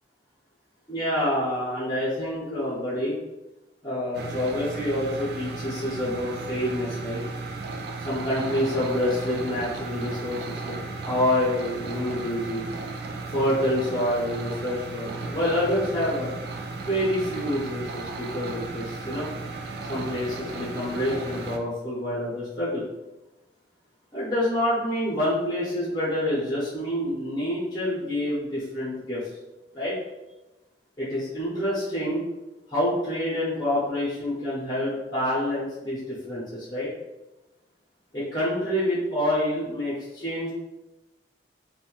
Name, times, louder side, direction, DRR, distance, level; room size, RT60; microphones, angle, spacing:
voice 1, 0.9-3.2 3.8-7.2 8.0-10.8 11.0-12.7 13.3-16.3 16.8-19.3 19.9-22.8 24.1-29.3 29.7-30.0 31.0-32.2 32.7-36.9 38.1-40.5, left 1 dB, 25° left, -7 dB, 0.6 m, -27 dB
sound 1, 4.1-21.6, right 3 dB, 65° right, 0.3 m, -35 dB
2.6 x 2.1 x 3.0 m, 1.0 s
head